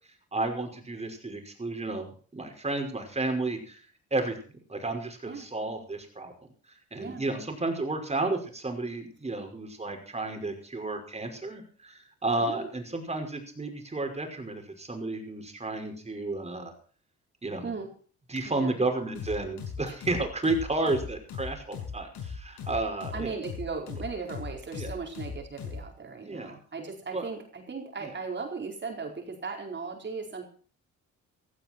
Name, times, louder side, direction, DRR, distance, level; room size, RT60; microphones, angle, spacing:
voice 1, 0.3-3.8 4.1-4.4 4.7-6.3 6.9-16.7 17.4-17.7 18.3-23.4 24.7-24.9 26.2-26.5 27.1-27.3 28.0-28.1, right 2 dB, 20° right, 4 dB, 5.5 m, -32 dB
voice 2, 18.4-18.8 19.9-20.0 23.1-30.5, right 4 dB, 35° right, 2 dB, 4.6 m, -37 dB
sound 1, 19.2-25.9, left 6 dB, 75° left, 6.7 m, -38 dB
16.0 x 15.0 x 4.6 m, 0.43 s
cardioid pair, 90°, 30 cm